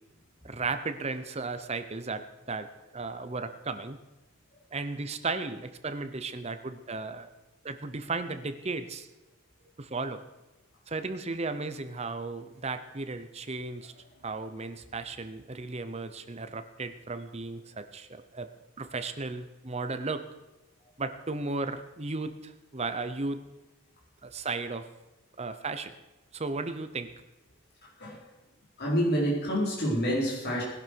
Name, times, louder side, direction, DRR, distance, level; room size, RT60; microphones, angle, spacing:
voice 1, 0.4-2.7 2.9-4.0 4.7-7.3 7.6-9.1 9.8-10.2 10.9-13.9 14.2-18.5 18.8-20.2 21.0-23.4 24.2-24.9 25.4-25.9 26.3-27.1, right 3 dB, 30° right, 9 dB, 0.8 m, -35 dB
voice 2, 28.8-30.6, equal, 50° left, -4 dB, 4.2 m, -27 dB
20.0 x 11.5 x 4.6 m, 1.0 s
head